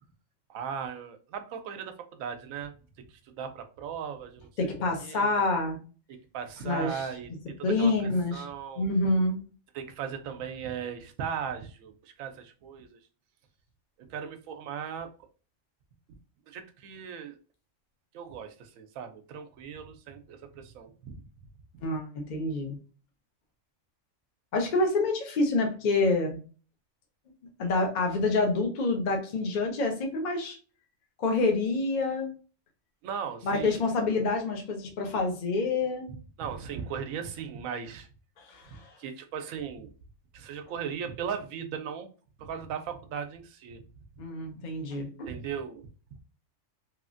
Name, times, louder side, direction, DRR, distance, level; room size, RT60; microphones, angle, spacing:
voice 1, 0.5-4.7 5.0-5.4 6.3-8.9 9.7-13.0 14.0-15.1 16.5-17.4 18.1-21.2 21.7-21.8 33.0-33.8 36.4-38.1 39.0-39.9 40.3-42.1 42.4-43.8 45.3-46.2, right 7 dB, 90° right, 8 dB, 1.0 m, -38 dB
voice 2, 4.6-5.8 6.6-7.0 7.6-8.5 8.8-9.4 21.8-22.8 24.5-26.4 27.6-30.6 31.2-32.3 33.4-36.1 38.4-38.9 44.2-45.3, left 3 dB, 45° left, 3 dB, 0.7 m, -27 dB
3.0 x 2.4 x 2.4 m, 0.37 s
omnidirectional pair, 1.3 m